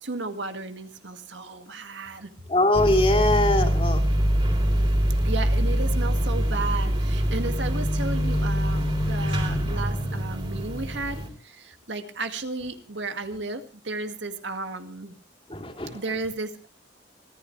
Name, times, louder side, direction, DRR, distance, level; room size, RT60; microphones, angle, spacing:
voice 1, 0.0-2.3 5.2-15.2 15.9-16.7, right 3 dB, 75° right, 7 dB, 2.0 m, -34 dB
voice 2, 2.5-4.0 15.5-16.0, left 1 dB, 30° left, 5 dB, 3.1 m, -22 dB
sound 1, 2.7-11.3, equal, 30° right, 3.7 m, -24 dB
25.5 x 15.0 x 3.3 m, 0.33 s
head